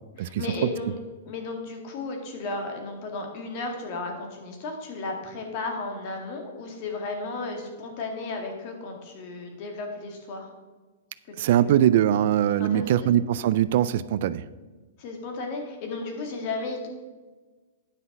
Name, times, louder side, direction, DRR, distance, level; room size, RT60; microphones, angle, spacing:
voice 1, 0.2-1.0 1.3-10.5 11.4-11.8 12.6-13.1 15.0-16.9, left 3 dB, 40° left, 3 dB, 2.0 m, -34 dB
voice 2, 11.4-14.4, right 11 dB, 50° right, 16 dB, 0.3 m, -22 dB
10.0 x 5.7 x 5.4 m, 1.3 s
hypercardioid pair, 160°, 0 cm